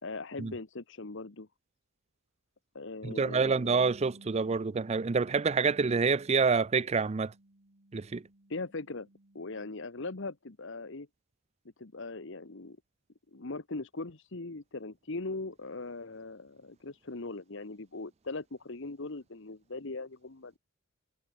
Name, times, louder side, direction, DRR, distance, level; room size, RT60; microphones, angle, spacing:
voice 1, 0.0-1.5 2.7-3.6 8.5-9.1 9.3-11.1 11.8-12.8 13.3-20.5, left 3 dB, 60° left, 1.2 m, -40 dB
voice 2, 3.0-7.3 7.9-8.2, right 4 dB, 30° right, 0.4 m, -27 dB
Bass guitar, 3.5-9.7, right 1 dB, 60° right, 2.0 m, -56 dB
head